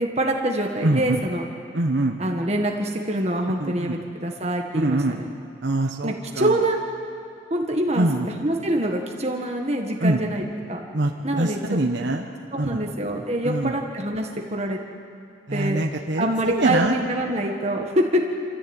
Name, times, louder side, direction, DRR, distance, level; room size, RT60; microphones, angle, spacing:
voice 1, 0.0-1.4 2.2-5.3 6.0-6.8 7.5-10.8 11.2-11.6 12.5-14.8 15.5-15.8 16.2-18.2, right 1 dB, 35° right, 1 dB, 1.6 m, -25 dB
voice 2, 0.8-1.2 1.7-2.2 3.6-3.9 4.7-5.2 5.6-6.5 8.0-8.3 10.0-10.2 10.9-12.3 12.6-12.8 13.4-13.7 15.5-16.9, right 2 dB, 70° right, 1 dB, 1.2 m, -24 dB
28.5 x 14.0 x 9.0 m, 2.5 s
head